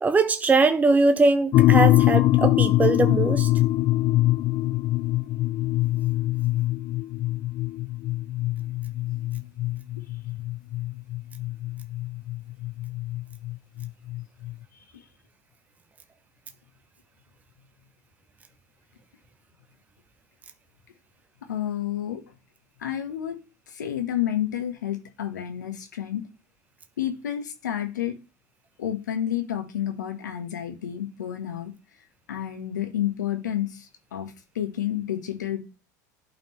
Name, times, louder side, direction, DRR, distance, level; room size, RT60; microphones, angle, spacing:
voice 1, 0.0-3.5, right 3 dB, 15° right, 0.6 m, -21 dB
sound 1, 1.5-14.5, left 16 dB, 50° left, 0.5 m, -23 dB
voice 2, 21.5-22.2 22.8-23.4 23.7-26.2 27.0-28.2 28.8-31.7 32.3-35.6, left 11 dB, 85° left, 1.1 m, -30 dB
11.0 x 4.3 x 3.0 m
hypercardioid pair, 80°, 9 cm